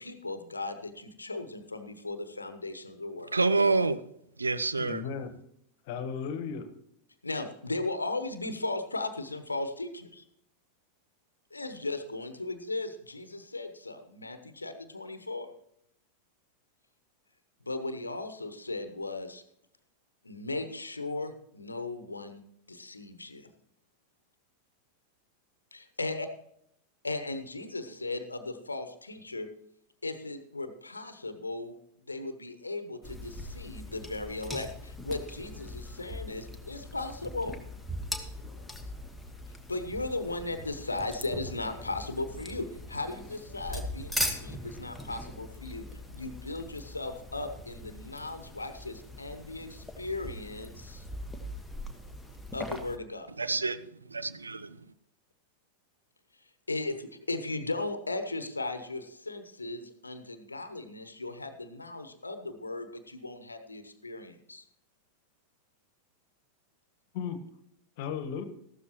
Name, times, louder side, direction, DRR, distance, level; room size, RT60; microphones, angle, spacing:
voice 1, 0.0-3.3 7.2-10.2 11.5-15.5 17.6-19.4 20.2-22.4 22.7-23.5 25.7-26.3 27.0-29.5 30.0-31.8 32.1-37.6 39.7-45.9 46.1-51.0 52.5-53.3 56.7-64.6, left 2 dB, 80° left, 1.1 m, -37 dB
voice 2, 3.3-4.0 4.4-5.0 53.4-54.8, right 3 dB, 80° right, 0.5 m, -28 dB
voice 3, 4.8-5.3 5.9-6.7 67.1-67.4 68.0-68.4, left 7 dB, 50° left, 1.3 m, -35 dB
sound 1, 33.0-53.0, left 1 dB, ahead, 1.3 m, -41 dB
sound 2, 40.5-48.4, right 1 dB, 15° right, 1.8 m, -51 dB
14.5 x 12.5 x 3.0 m
figure-of-eight pair, 90°, 0 cm